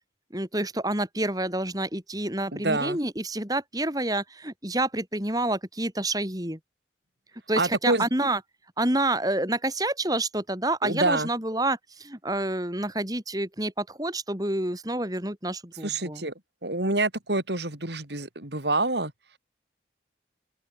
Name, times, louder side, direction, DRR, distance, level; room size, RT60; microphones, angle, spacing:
voice 1, 0.3-6.6 7.5-8.4 8.8-16.2, right 2 dB, 20° right, 5.6 m, -28 dB
voice 2, 2.5-3.0 7.5-8.1 10.8-11.3 15.8-16.3 16.6-19.1, right 2 dB, 70° right, 5.0 m, -27 dB
open air
head